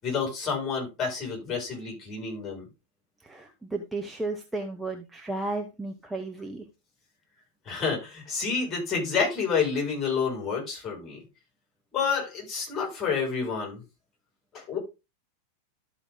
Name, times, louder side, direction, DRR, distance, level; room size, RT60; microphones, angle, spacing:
voice 1, 0.0-2.7 7.6-11.2 11.9-13.8 14.5-14.8, left 5 dB, 25° left, 0 dB, 5.9 m, -29 dB
voice 2, 3.2-6.7, right 2 dB, 5° right, 4 dB, 1.0 m, -34 dB
12.5 x 5.0 x 3.8 m, 0.26 s
figure-of-eight pair, 90°, 0 cm